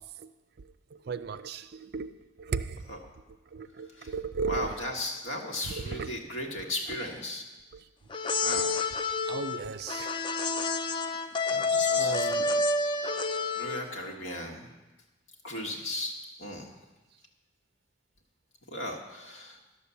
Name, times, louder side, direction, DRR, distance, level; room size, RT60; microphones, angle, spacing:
voice 1, 1.1-2.1 2.5-2.8 3.5-4.7 5.9-6.1 9.3-10.1 12.0-12.5, right 5 dB, 50° right, 0.4 m, -34 dB
voice 2, 4.5-7.4 8.4-8.7 11.5-12.6 13.6-14.7 15.4-16.1 16.4-16.7 18.7-19.6, left 1 dB, 85° left, 1.7 m, -36 dB
sound 1, 8.1-14.0, left 3 dB, 25° left, 0.3 m, -29 dB
11.0 x 6.7 x 7.0 m
head